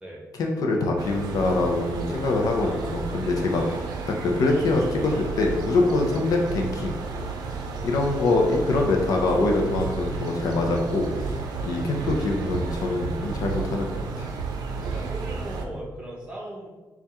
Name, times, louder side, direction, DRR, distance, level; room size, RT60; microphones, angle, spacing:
voice 1, 0.4-3.6 4.2-6.9 7.8-11.1 11.6-14.3, left 2 dB, 70° left, 1 dB, 0.6 m, -24 dB
sound 1, 1.0-15.7, right 4 dB, 85° right, 0.5 m, -32 dB
voice 2, 2.6-3.0 3.5-3.8 7.9-8.1 14.8-16.7, right 1 dB, 15° right, -5 dB, 1.1 m, -39 dB
4.2 x 2.4 x 3.5 m, 1.2 s
cardioid pair, 125°, 7 cm